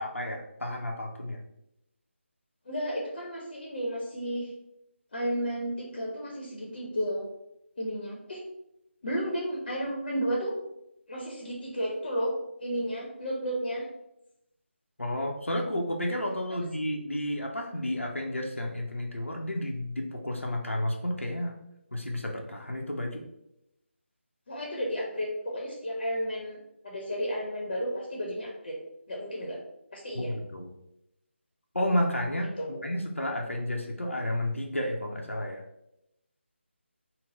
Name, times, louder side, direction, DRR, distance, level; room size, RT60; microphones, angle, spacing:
voice 1, 0.0-1.4 15.0-21.5 21.9-23.2 30.1-30.7 31.7-32.5 32.8-35.6, left 1 dB, 85° left, 0 dB, 0.6 m, -31 dB
voice 2, 2.7-4.5 5.1-7.3 7.8-8.4 9.0-10.5 11.1-12.3 12.6-13.9 24.5-26.6 26.8-28.8 29.1-29.6 29.9-30.3 32.6-32.9, equal, 45° left, -2 dB, 0.8 m, -32 dB
3.8 x 2.0 x 3.8 m, 0.85 s
figure-of-eight pair, 155°, 7 cm